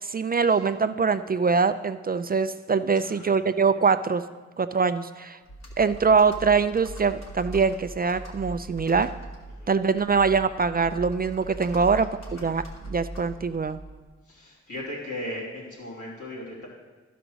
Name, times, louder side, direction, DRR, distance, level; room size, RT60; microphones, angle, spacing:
voice 1, 0.0-4.2 4.6-5.4 5.8-9.1 9.7-13.8, right 5 dB, 30° right, 11 dB, 0.4 m, -23 dB
voice 2, 3.0-3.4 9.6-9.7 11.7-11.9 12.3-12.5 14.3-16.7, left 1 dB, 80° left, -5 dB, 3.1 m, -37 dB
Computer keyboard, 5.5-14.1, right 2 dB, 65° left, 1.7 m, -40 dB
11.5 x 5.1 x 6.2 m, 1.3 s
cardioid pair, 60°, 29 cm